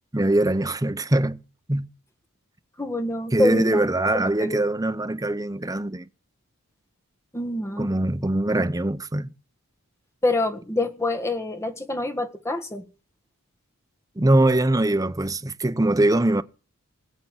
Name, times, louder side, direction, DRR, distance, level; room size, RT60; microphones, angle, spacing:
voice 1, 0.1-1.4 1.7-1.9 3.3-6.1 7.8-9.3 14.2-16.4, right 1 dB, 15° right, 0.8 m, -22 dB
voice 2, 2.8-3.8 4.4-4.6 7.3-7.9 10.2-12.8, left 2 dB, 10° left, 1.7 m, -26 dB
20.0 x 8.6 x 8.0 m
head